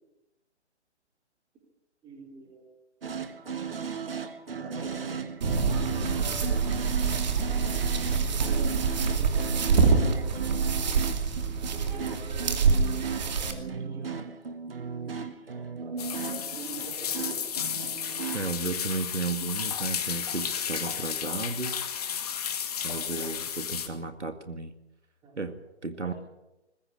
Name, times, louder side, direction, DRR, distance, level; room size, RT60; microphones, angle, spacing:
voice 1, 2.0-2.6 4.5-5.4 5.9-6.5 8.0-8.8 9.1-11.0 11.4-12.6 12.9-14.2 15.8-17.5 18.1-18.2 25.2-25.3 26.0-26.1, right 3 dB, 10° right, 0 dB, 4.3 m, -45 dB
sound 1, 3.0-18.4, right 6 dB, 55° right, 1.9 m, -36 dB
sound 2, 5.4-13.5, right 5 dB, 40° right, 2.6 m, -26 dB
sound 3, 16.0-23.9, left 8 dB, 35° left, 2.1 m, -33 dB
voice 2, 18.3-21.8 22.8-24.7 25.4-26.1, right 4 dB, 80° right, 8 dB, 2.0 m, -34 dB
20.5 x 15.5 x 8.8 m, 0.98 s
figure-of-eight pair, 145°, 35 cm